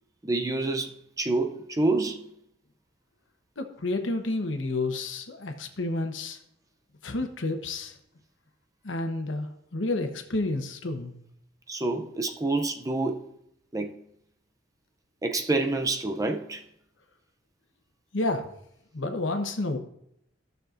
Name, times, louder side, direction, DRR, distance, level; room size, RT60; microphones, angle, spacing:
voice 1, 0.2-2.2 11.7-13.3 13.7-14.0 15.2-16.6, right 2 dB, 20° right, 0.5 m, -27 dB
voice 2, 3.6-6.4 7.0-8.0 8.8-11.1 18.1-18.4 18.9-19.8, left 2 dB, 75° left, 1.1 m, -30 dB
15.0 x 6.7 x 2.6 m
head